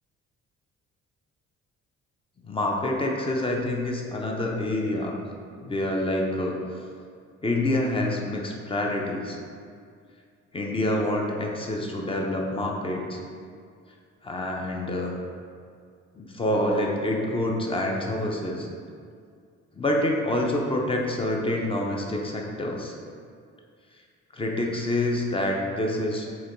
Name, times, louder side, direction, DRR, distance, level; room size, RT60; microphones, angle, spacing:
voice 1, 2.4-5.2 5.6-6.6 7.4-9.4 10.5-13.2 14.2-15.2 16.2-18.7 19.7-22.9 24.3-26.3, left 1 dB, 20° left, 0 dB, 0.5 m, -27 dB
4.1 x 2.9 x 2.5 m, 2.2 s
cardioid pair, 90°, 30 cm